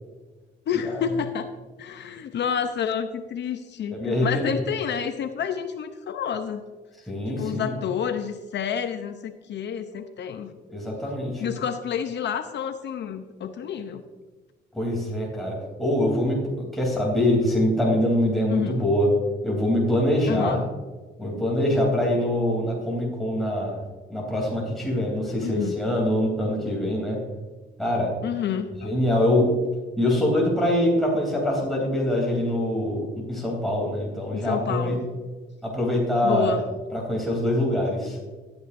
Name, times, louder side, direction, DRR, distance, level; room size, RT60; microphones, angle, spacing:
voice 1, 0.7-1.5 1.8-6.6 7.4-10.5 11.4-14.0 18.5-18.8 20.3-20.7 25.4-25.8 28.2-29.0 34.3-35.0 36.2-36.6, left 7 dB, 60° left, 8 dB, 0.7 m, -29 dB
voice 2, 3.9-4.5 7.1-7.7 10.7-11.4 14.7-19.1 19.4-20.6 21.2-23.8 24.1-27.2 27.8-28.1 28.8-29.5 30.0-35.0 35.6-36.6 36.9-38.2, left 1 dB, ahead, -4 dB, 3.1 m, -24 dB
15.0 x 9.6 x 2.6 m, 1.3 s
cardioid pair, 90°, 20 cm